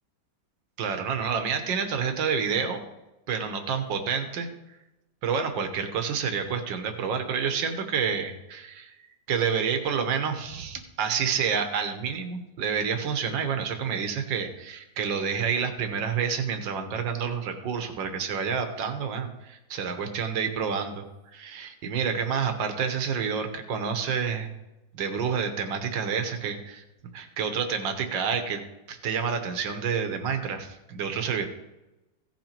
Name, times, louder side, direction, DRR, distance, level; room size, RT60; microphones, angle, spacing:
voice 1, 0.8-2.8 3.3-4.5 5.2-8.9 9.3-21.0 21.3-24.5 24.9-26.8 27.1-28.6 28.9-31.5, right 6 dB, 75° right, 6 dB, 1.8 m, -29 dB
16.0 x 5.9 x 4.4 m, 0.97 s
omnidirectional pair, 2.0 m